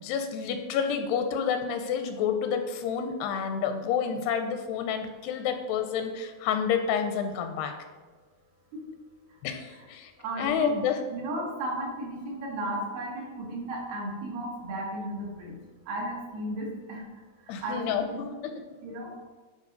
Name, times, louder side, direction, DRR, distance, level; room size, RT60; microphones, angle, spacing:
voice 1, 0.0-7.8 9.4-10.1 10.4-11.0 17.5-18.6, left 7 dB, 80° left, 7 dB, 2.5 m, -29 dB
voice 2, 10.2-10.8 11.1-15.6 15.9-17.0 17.6-18.0 18.8-19.2, right 1 dB, 70° right, -2 dB, 3.5 m, -34 dB
11.0 x 4.7 x 5.1 m, 1.4 s
omnidirectional pair, 4.9 m